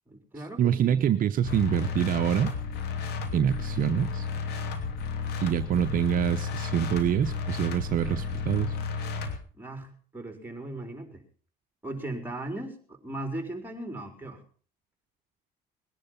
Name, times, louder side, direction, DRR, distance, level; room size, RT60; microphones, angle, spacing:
voice 1, 0.1-1.1 9.5-11.2 11.8-14.4, right 1 dB, 10° right, 6 dB, 4.1 m, -38 dB
voice 2, 0.6-2.5 3.3-4.3 5.4-8.8, right 9 dB, 55° right, 9 dB, 0.8 m, -26 dB
sound 1, 1.4-9.4, left 5 dB, 75° left, 2.9 m, -33 dB
20.5 x 11.0 x 5.7 m, 0.42 s
cardioid pair, 110°, 17 cm